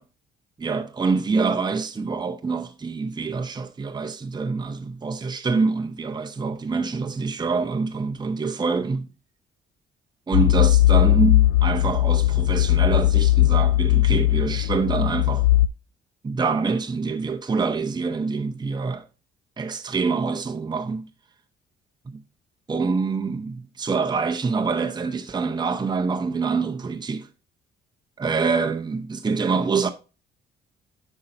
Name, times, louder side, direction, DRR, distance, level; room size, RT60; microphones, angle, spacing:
voice 1, 0.6-9.1 10.3-15.4 16.2-19.0 19.6-21.1 22.1-22.2 22.7-27.3 28.2-29.9, right 4 dB, 20° right, 0.7 m, -25 dB
sound 1, 10.3-15.7, left 15 dB, 75° left, 0.4 m, -18 dB
8.5 x 5.5 x 2.6 m
cardioid pair, 90°, 20 cm